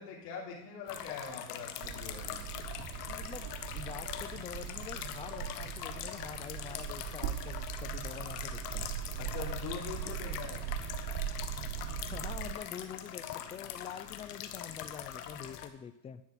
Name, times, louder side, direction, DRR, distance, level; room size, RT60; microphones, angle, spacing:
voice 1, 0.0-2.4 9.2-10.6 11.2-11.3, left 6 dB, 70° left, -5 dB, 3.5 m, -43 dB
sound 1, 0.9-15.7, left 10 dB, 85° left, 1.5 m, -43 dB
sound 2, 1.8-12.5, right 11 dB, 50° right, 0.9 m, -40 dB
voice 2, 2.8-8.9 11.9-16.2, left 8 dB, 15° left, 12 dB, 0.4 m, -46 dB
10.5 x 6.3 x 9.0 m, 0.83 s
supercardioid pair, 135°, 45 cm